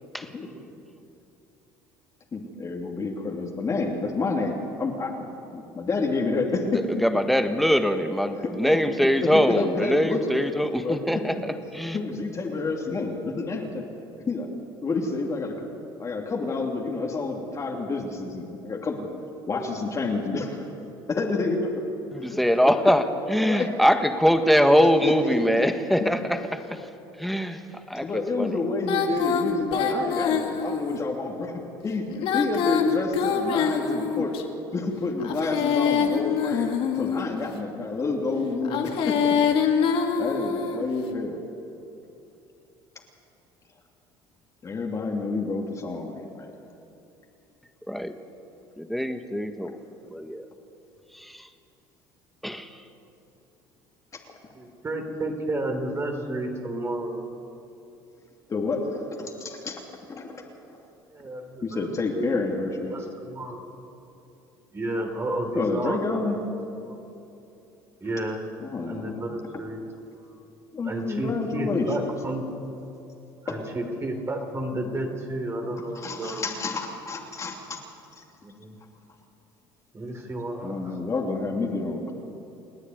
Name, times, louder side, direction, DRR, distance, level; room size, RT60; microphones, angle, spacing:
voice 1, 2.3-5.1 5.5-7.0 8.4-8.8 9.2-10.3 10.8-11.2 11.9-13.8 14.3-14.5 14.8-15.7 16.0-19.1 19.5-20.6 21.1-21.8 22.2-22.4 23.4-23.7 24.8-25.3 28.0-31.5 31.8-32.0 32.3-34.4 34.7-36.7 37.0-39.2 40.2-41.4 44.6-46.5 58.5-59.8 60.1-60.4 61.6-62.9 65.5-66.4 68.6-69.2 69.5-69.6 70.7-72.1 73.5-73.7 75.9-77.8 78.2-78.3 80.6-82.1, left 3 dB, 30° left, 0 dB, 2.9 m, -29 dB
voice 2, 6.7-12.0 22.1-26.9 27.2-28.6 47.9-48.1 48.8-49.8 50.1-50.4 51.1-51.5 52.4-52.8, equal, ahead, 7 dB, 1.6 m, -23 dB
Female singing, 28.8-31.0 32.1-34.4 35.2-37.4 38.6-40.9, left 7 dB, 60° left, 2.2 m, -25 dB
voice 3, 54.5-57.2 61.1-62.3 62.9-63.7 64.7-66.2 66.7-66.9 68.0-68.4 68.9-69.8 70.2-70.3 70.8-72.4 73.4-76.7 78.4-78.7 79.9-81.0, right 1 dB, 25° right, 4 dB, 3.4 m, -32 dB
29.5 x 9.8 x 9.5 m, 2.8 s
supercardioid pair, 95°, 10 cm